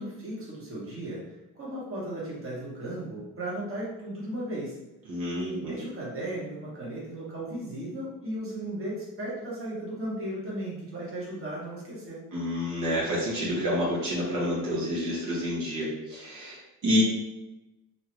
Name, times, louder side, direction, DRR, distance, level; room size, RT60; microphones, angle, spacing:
voice 1, 0.0-4.8 5.3-12.2, right 1 dB, 35° right, -6 dB, 1.3 m, -36 dB
voice 2, 5.1-5.8 12.3-17.0, equal, 60° right, -7 dB, 1.2 m, -28 dB
2.9 x 2.3 x 3.0 m, 0.98 s
supercardioid pair, 75°, 36 cm